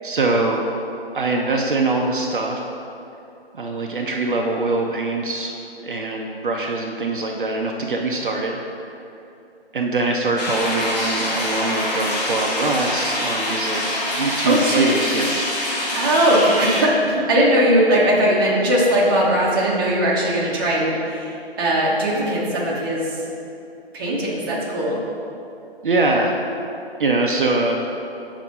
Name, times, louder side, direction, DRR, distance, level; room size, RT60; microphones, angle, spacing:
voice 1, 0.0-0.6 1.1-2.6 3.5-5.5 5.8-8.6 9.7-15.5 25.8-26.3 27.0-27.8, right 2 dB, 55° right, 0 dB, 0.7 m, -23 dB
sound 1, 10.4-16.8, left 1 dB, 40° left, 1.5 m, -25 dB
voice 2, 14.4-14.9 15.9-21.3 21.6-23.2 23.9-25.0, right 1 dB, 20° right, -4 dB, 0.9 m, -19 dB
6.2 x 4.1 x 5.3 m, 2.7 s
figure-of-eight pair, 145°, 31 cm